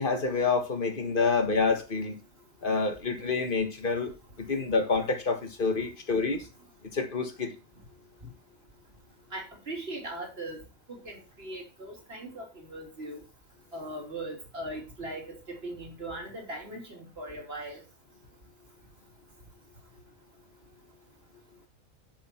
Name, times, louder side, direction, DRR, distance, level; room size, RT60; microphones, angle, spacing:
voice 1, 0.0-2.2 2.6-4.1 4.4-6.5 6.9-7.5, left 4 dB, 40° left, 1.7 m, -27 dB
voice 2, 9.3-13.2 13.7-17.8, right 1 dB, 45° right, 3.4 m, -39 dB
10.5 x 6.5 x 4.4 m
omnidirectional pair, 1.5 m